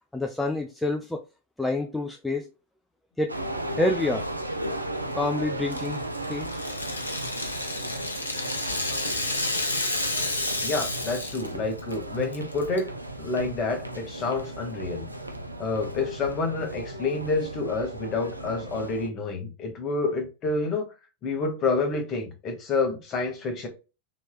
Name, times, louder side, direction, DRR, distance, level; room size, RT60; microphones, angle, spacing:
voice 1, 0.1-1.2 1.6-2.5 3.2-3.4 3.8-4.3 5.1-6.0 6.3-6.5, left 2 dB, 5° left, 0.4 m, -27 dB
sound 1, 3.3-19.1, right 1 dB, 85° right, 0.4 m, -35 dB
Rattle (instrument), 5.7-11.5 11.8-11.9 12.3-12.8, left 2 dB, 80° left, 0.5 m, -31 dB
voice 2, 10.6-12.9 13.2-15.0 15.6-20.9 21.2-23.7, left 3 dB, 30° left, 1.1 m, -28 dB
3.0 x 3.0 x 2.3 m
figure-of-eight pair, 90°, 0 cm